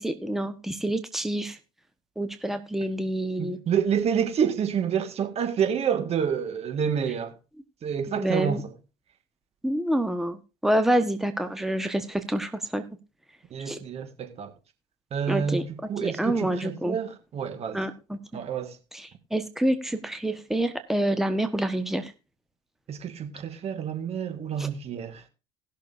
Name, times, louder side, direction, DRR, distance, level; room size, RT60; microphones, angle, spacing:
voice 1, 0.0-1.6 2.2-3.6 8.1-8.6 9.6-12.8 13.6-13.8 15.3-15.6 16.0-17.0 17.7-18.4 18.9-22.1 24.6-24.7, right 1 dB, ahead, 1.2 m, -27 dB
voice 2, 3.4-7.3 7.8-8.7 13.5-14.5 15.1-17.8 18.3-18.8 22.9-25.2, right 7 dB, 45° right, 1.8 m, -28 dB
19.0 x 6.6 x 2.7 m
hypercardioid pair, 70°, 15 cm